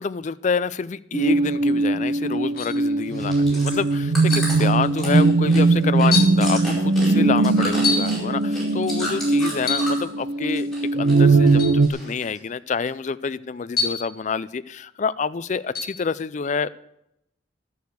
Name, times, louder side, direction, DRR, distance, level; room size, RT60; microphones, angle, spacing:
voice 1, 0.0-16.7, left 5 dB, 40° left, 16 dB, 0.4 m, -27 dB
sound 1, 1.1-11.9, right 3 dB, 60° right, 0.7 m, -20 dB
sound 2, 2.6-2.9 4.3-4.6 5.4-5.5 6.1-6.4 7.8-8.2 9.6-10.0 11.6-11.8 13.8-14.2 15.8-16.0, left 5 dB, 55° left, 1.6 m, -26 dB
Chewing mastication, 3.1-10.1 10.4-11.2 11.5-12.4 12.9-13.0, equal, ahead, 4.7 m, -33 dB
12.0 x 6.6 x 8.1 m, 0.81 s
head